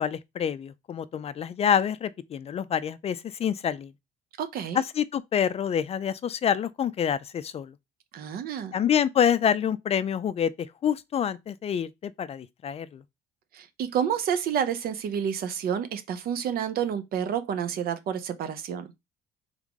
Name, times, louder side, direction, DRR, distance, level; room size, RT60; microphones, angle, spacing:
voice 1, 0.0-3.9 4.7-7.7 8.7-13.0, left 8 dB, 35° left, 0.4 m, -27 dB
voice 2, 4.4-4.8 8.1-8.8 13.5-18.9, right 8 dB, 65° right, 0.7 m, -29 dB
3.7 x 3.6 x 3.5 m
cardioid pair, 110°, 17 cm